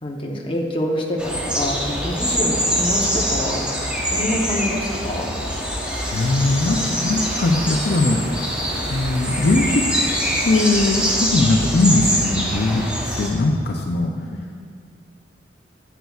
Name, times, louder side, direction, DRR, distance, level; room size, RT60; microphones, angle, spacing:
voice 1, 0.0-5.3 14.3-14.5, left 1 dB, 30° left, 0 dB, 0.8 m, -26 dB
sound 1, 1.2-13.3, equal, 5° right, 1.0 m, -24 dB
sound 2, 5.9-11.2, right 1 dB, 90° right, 1.2 m, -36 dB
voice 2, 6.1-8.2 8.7-9.9 10.4-12.8 13.2-14.6, left 2 dB, 60° left, 2 dB, 0.5 m, -20 dB
10.5 x 8.1 x 2.4 m, 2.2 s
head